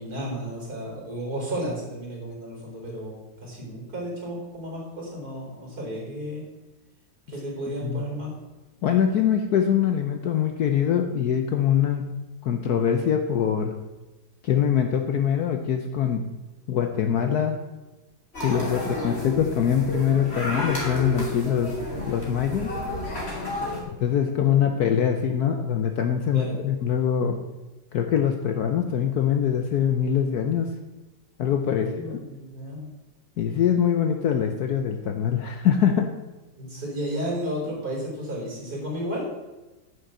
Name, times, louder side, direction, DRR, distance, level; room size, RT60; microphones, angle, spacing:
voice 1, 0.0-6.4 7.3-8.3 18.8-18.9 26.3-26.6 31.6-32.9 36.6-39.3, equal, 50° right, -2 dB, 4.0 m, -33 dB
voice 2, 8.8-12.1 12.4-13.7 14.4-16.3 16.7-17.6 18.4-21.7 22.1-22.7 24.0-27.4 27.9-30.7 31.4-32.2 33.4-36.1, left 8 dB, 60° left, 6 dB, 1.1 m, -23 dB
sound 1, 18.3-23.8, left 1 dB, 30° left, 3.0 m, -31 dB
9.4 x 6.5 x 7.2 m, 1.1 s
omnidirectional pair, 2.1 m